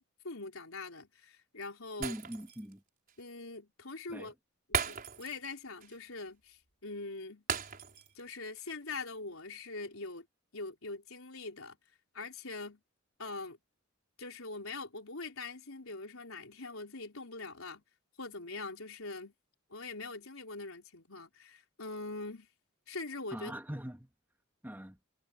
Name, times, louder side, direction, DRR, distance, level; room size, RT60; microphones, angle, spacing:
voice 1, 0.0-2.2 3.2-4.3 4.7-7.4 8.1-10.3 10.5-11.8 12.1-12.8 13.2-13.6 14.2-17.8 18.2-19.3 19.7-22.5 22.9-23.5, left 3 dB, 80° left, 4.0 m, -43 dB
voice 2, 2.0-2.8 4.1-4.3 23.3-24.1 24.6-25.0, equal, 10° right, 2.0 m, -42 dB
Shatter, 2.0-2.7 3.1-3.2 4.7-5.5 5.8-6.0 7.5-8.2 8.6-8.7, right 6 dB, 45° right, 5.4 m, -36 dB
head